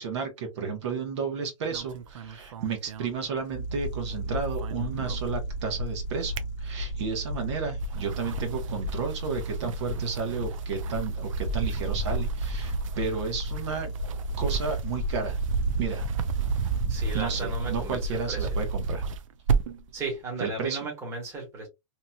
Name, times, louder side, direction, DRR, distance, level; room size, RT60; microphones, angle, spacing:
voice 1, 0.0-13.9 14.4-15.4 15.8-16.0 17.1-19.1 20.4-20.8, right 5 dB, 60° right, 1.1 m, -32 dB
sound 1, 1.7-3.9 4.1-5.7 6.1-7.2 7.7-19.9, right 5 dB, 75° right, 0.4 m, -32 dB
sound 2, 3.5-19.1, equal, 65° left, 0.6 m, -34 dB
voice 2, 16.9-18.0 18.3-18.5 19.9-21.7, right 3 dB, 15° right, 1.1 m, -35 dB
2.9 x 2.6 x 2.3 m
supercardioid pair, 155°, 17 cm